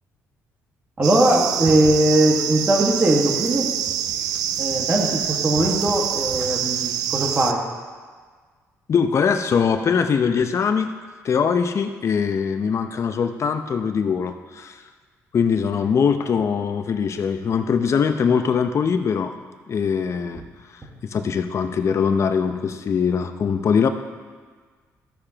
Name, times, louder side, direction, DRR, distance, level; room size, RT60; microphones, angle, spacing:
voice 1, 1.0-3.7 4.6-7.6, right 1 dB, 30° right, -1 dB, 1.6 m, -20 dB
sound 1, 1.0-7.5, right 10 dB, 85° right, 0.4 m, -26 dB
voice 2, 8.9-10.9 11.2-14.8 15.3-19.3 19.7-20.4 21.1-23.9, left 6 dB, 50° left, 7 dB, 0.7 m, -22 dB
13.5 x 6.8 x 2.9 m, 1.5 s
supercardioid pair, 75°, 6 cm